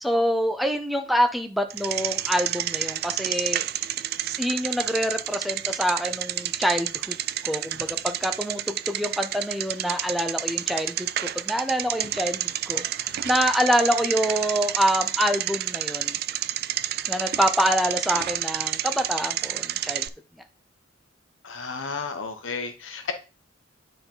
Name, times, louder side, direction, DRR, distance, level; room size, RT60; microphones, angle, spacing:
voice 1, 0.0-3.6 4.4-7.2 7.4-16.2 17.1-20.1, equal, ahead, 6 dB, 0.5 m, -26 dB
Bicycle, 1.7-20.1, right 13 dB, 50° right, 0.3 m, -30 dB
voice 2, 21.4-23.1, left 5 dB, 80° left, 6 dB, 1.1 m, -32 dB
9.4 x 4.0 x 3.8 m, 0.32 s
head